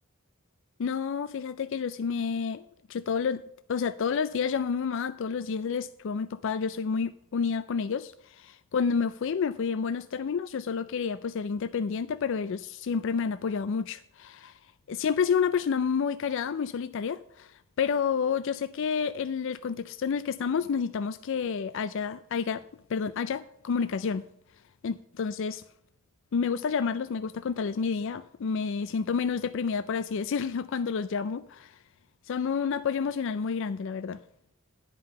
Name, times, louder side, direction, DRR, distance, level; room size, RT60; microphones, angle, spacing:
voice 1, 0.8-3.4 3.7-14.6 14.9-17.5 17.8-22.6 22.9-24.2 24.8-25.6 26.3-31.8 32.3-34.2, left 6 dB, 65° left, 0.4 m, -29 dB
10.5 x 5.3 x 6.7 m
head